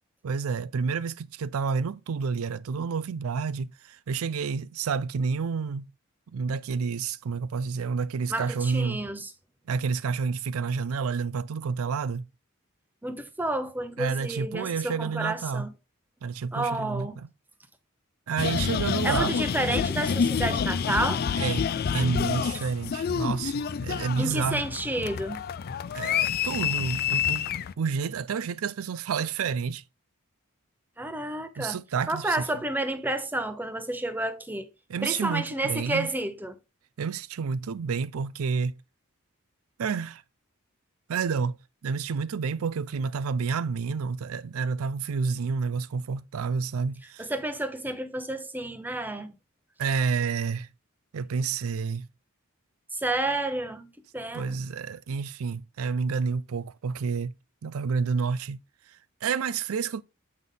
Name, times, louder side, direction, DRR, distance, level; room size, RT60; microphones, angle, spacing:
voice 1, 0.2-5.9 6.3-9.0 9.7-12.3 14.0-15.7 16.2-17.3 18.3-19.4 21.4-24.6 25.9-27.5 27.8-29.8 31.6-32.4 34.9-36.1 37.0-38.7 39.8-40.2 41.1-41.6 41.8-47.3 49.8-50.7 51.1-52.1 54.3-57.3 57.6-58.6 58.9-60.0, right 5 dB, 80° right, 0.4 m, -29 dB
voice 2, 8.3-9.3 13.0-15.7 16.5-17.2 19.0-21.2 24.2-25.4 31.0-31.8 32.1-34.7 35.0-36.5 47.2-49.3 52.9-54.5, right 1 dB, 10° right, 0.6 m, -30 dB
sound 1, 18.4-27.7, left 7 dB, 45° left, 0.3 m, -28 dB
7.7 x 3.6 x 3.8 m
head